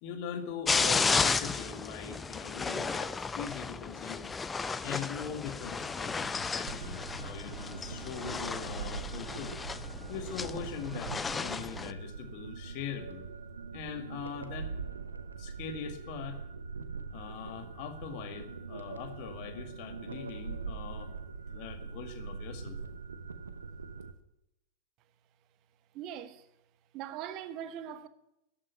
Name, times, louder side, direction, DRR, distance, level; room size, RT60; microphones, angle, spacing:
voice 1, 0.0-4.3 4.8-9.6 10.1-13.3 13.7-14.7 15.4-16.5 17.1-21.1 21.5-22.8, left 7 dB, 45° left, 2.0 m, -41 dB
sound 1, 0.7-11.9, left 4 dB, 15° left, 0.6 m, -33 dB
sound 2, 6.7-24.1, right 5 dB, 75° right, 1.0 m, -42 dB
voice 2, 25.9-26.5 26.9-28.1, right 10 dB, 40° right, 1.1 m, -41 dB
13.5 x 8.7 x 9.1 m
figure-of-eight pair, 90°, 0 cm